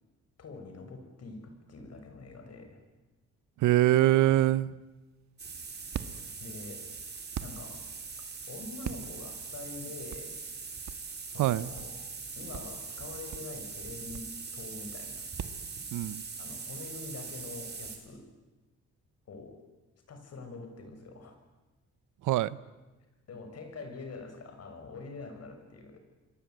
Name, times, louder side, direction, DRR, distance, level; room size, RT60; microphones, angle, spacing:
voice 1, 0.4-2.8 6.4-6.9 7.4-7.8 8.5-10.3 11.3-12.0 12.4-15.3 16.4-18.3 19.3-19.6 20.1-21.3 23.3-26.0, left 3 dB, 55° left, 6 dB, 6.6 m, -45 dB
voice 2, 3.6-4.7 11.4-11.7 15.9-16.2 22.2-22.6, right 14 dB, 85° right, 19 dB, 0.9 m, -24 dB
sound 1, 4.8-15.6, right 9 dB, 65° right, 1.7 m, -43 dB
sound 2, 5.4-18.0, right 5 dB, 35° right, 5.0 m, -42 dB
28.5 x 22.0 x 9.4 m, 1.2 s
cardioid pair, 90°, 30 cm